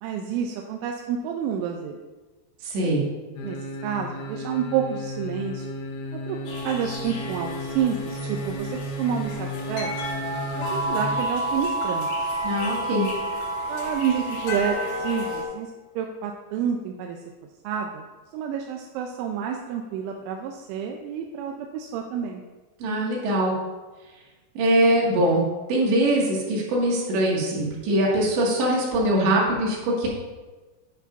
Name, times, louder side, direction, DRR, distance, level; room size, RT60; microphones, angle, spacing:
voice 1, 0.0-2.0 2.8-3.1 3.4-3.6 3.8-5.7 6.3-6.4 6.6-9.9 10.6-12.1 13.7-17.2 17.6-18.0 18.3-22.4, right 8 dB, 80° right, 2 dB, 3.0 m, -29 dB
voice 2, 2.6-3.0 12.4-13.1 22.8-23.6 24.6-25.4 25.7-30.1, right 1 dB, 65° right, -3 dB, 4.1 m, -22 dB
sound 1, 3.4-11.2 11.6-11.7, equal, 90° left, 3.7 m, -34 dB
sound 2, 6.5-15.4, right 1 dB, 70° left, 4.7 m, -30 dB
12.0 x 10.0 x 2.6 m, 1.3 s
omnidirectional pair, 5.8 m